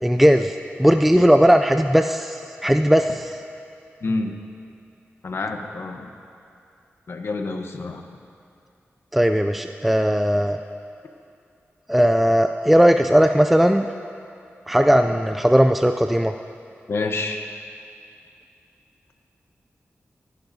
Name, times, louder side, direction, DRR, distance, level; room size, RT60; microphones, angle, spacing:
voice 1, 0.0-3.3 9.1-10.6 11.9-13.9 14.7-16.3, equal, 5° right, 6 dB, 0.3 m, -17 dB
voice 2, 4.0-4.4 5.2-6.1 7.1-8.0 16.9-17.5, left 3 dB, 65° left, 4 dB, 1.0 m, -28 dB
27.5 x 11.5 x 2.7 m, 2.5 s
wide cardioid pair, 135°, 5 cm